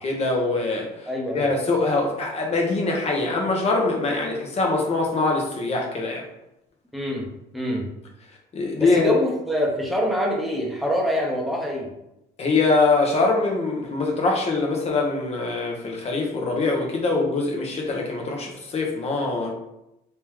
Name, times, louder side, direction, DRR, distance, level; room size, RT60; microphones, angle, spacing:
voice 1, 0.0-6.2 8.5-9.1 12.4-19.5, left 3 dB, 40° left, 0 dB, 1.0 m, -23 dB
voice 2, 1.1-1.5 6.9-7.3 7.5-7.9 8.8-11.9, equal, ahead, -1 dB, 0.8 m, -25 dB
3.2 x 3.0 x 3.5 m, 0.87 s
cardioid pair, 110°, 17 cm